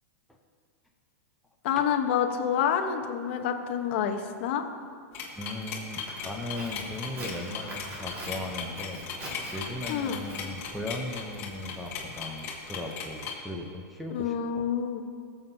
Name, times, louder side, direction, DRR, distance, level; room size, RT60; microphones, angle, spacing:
voice 1, 1.6-4.6 9.9-10.2 14.1-15.0, left 8 dB, 45° left, 5 dB, 0.9 m, -28 dB
sound 1, 5.1-13.3, left 7 dB, 30° left, 1.7 m, -37 dB
voice 2, 5.4-14.7, left 2 dB, ahead, -1 dB, 0.6 m, -38 dB
Walk footsteps, 6.1-12.2, equal, 25° right, 2.1 m, -43 dB
21.5 x 7.2 x 2.7 m, 2.2 s
supercardioid pair, 170°, 8 cm